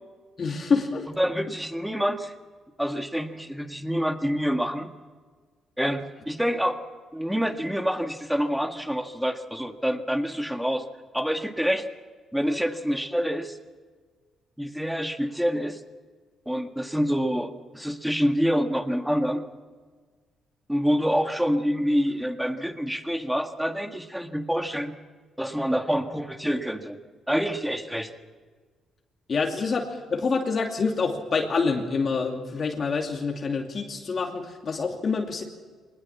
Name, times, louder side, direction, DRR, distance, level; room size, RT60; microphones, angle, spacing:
voice 1, 0.4-1.1 29.3-35.4, left 4 dB, 45° left, 1 dB, 2.6 m, -26 dB
voice 2, 1.2-2.3 2.8-4.9 5.8-6.8 7.1-10.8 11.1-11.9 12.3-13.6 14.6-15.8 16.5-19.4 20.7-24.9 25.4-27.0 27.3-28.1, equal, 5° right, 6 dB, 1.8 m, -27 dB
23.5 x 20.0 x 7.3 m, 1.5 s
cardioid pair, 90°, 0 cm